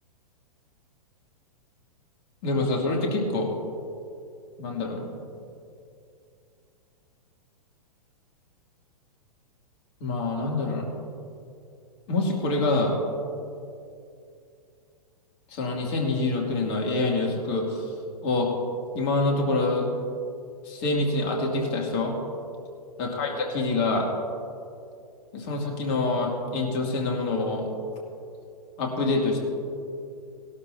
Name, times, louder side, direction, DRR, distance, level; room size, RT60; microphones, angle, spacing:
voice 1, 2.4-3.5 4.6-5.2 10.0-10.9 12.1-12.9 15.5-17.8 18.2-18.5 18.9-19.9 20.6-22.1 23.0-24.1 25.3-27.7 28.8-29.4, left 2 dB, 45° left, 0 dB, 2.6 m, -26 dB
19.5 x 12.5 x 2.8 m, 2.5 s
figure-of-eight pair, 110°, 20 cm